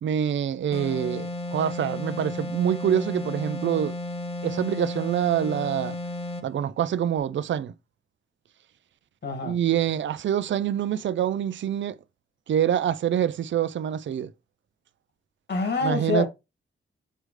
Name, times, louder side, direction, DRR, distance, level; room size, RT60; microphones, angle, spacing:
voice 1, 0.0-4.0 4.4-6.0 6.4-7.7 9.4-12.0 12.5-14.3 15.8-16.3, right 9 dB, 70° right, 0.5 m, -26 dB
sound 1, 0.7-6.5, left 1 dB, 30° left, 0.9 m, -33 dB
voice 2, 9.2-9.6 15.5-16.3, left 3 dB, 60° left, 2.2 m, -26 dB
7.7 x 4.8 x 3.3 m
wide cardioid pair, 140°, 20 cm